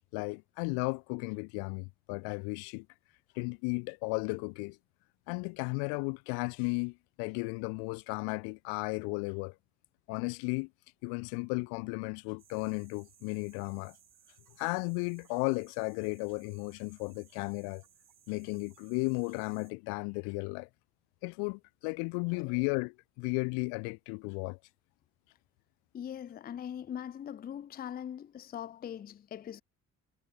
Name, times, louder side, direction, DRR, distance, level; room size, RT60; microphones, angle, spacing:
voice 1, 0.1-2.9 3.3-4.8 5.3-9.5 10.1-10.7 11.0-14.0 14.6-17.8 18.3-20.7 21.2-24.6, left 37 dB, 75° left, 0.6 m, -34 dB
sound 1, 12.4-19.7, right 9 dB, 55° right, 6.5 m, -63 dB
voice 2, 22.3-22.7 25.9-29.6, left 9 dB, 25° left, 0.4 m, -41 dB
hypercardioid pair, 45°, 38 cm